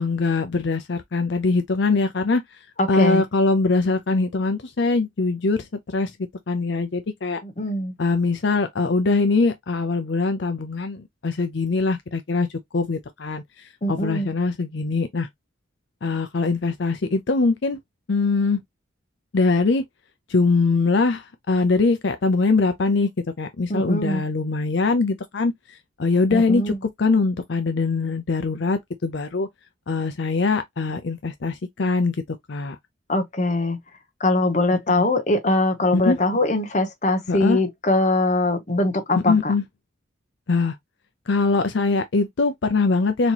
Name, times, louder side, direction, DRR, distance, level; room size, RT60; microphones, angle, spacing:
voice 1, 0.0-2.6 2.9-6.1 6.5-7.4 8.0-12.5 12.7-15.3 16.0-17.8 18.1-18.6 19.3-19.8 20.3-23.1 23.4-29.5 29.9-32.8 34.9-35.1 35.9-36.2 37.3-37.6 39.3-39.6 40.5-40.8 41.3-43.3, left 3 dB, 65° left, 0.5 m, -22 dB
voice 2, 2.8-3.2 7.4-7.9 13.8-14.3 23.7-24.2 26.3-26.8 33.1-33.8 34.2-39.5, left 2 dB, 35° left, 0.8 m, -22 dB
4.3 x 2.9 x 2.8 m
head